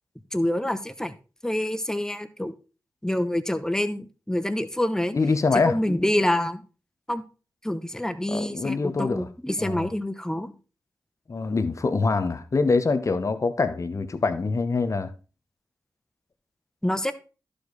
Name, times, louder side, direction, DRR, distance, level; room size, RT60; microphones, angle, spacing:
voice 1, 0.3-1.1 1.4-2.5 3.0-5.1 5.5-6.6 7.1-7.2 7.6-10.5 16.8-17.1, left 1 dB, 10° left, 1.0 m, -26 dB
voice 2, 5.1-5.8 8.3-9.3 9.6-9.9 11.3-15.1, left 4 dB, 45° left, 1.1 m, -24 dB
11.5 x 5.0 x 4.0 m
cardioid pair, 50°, 7 cm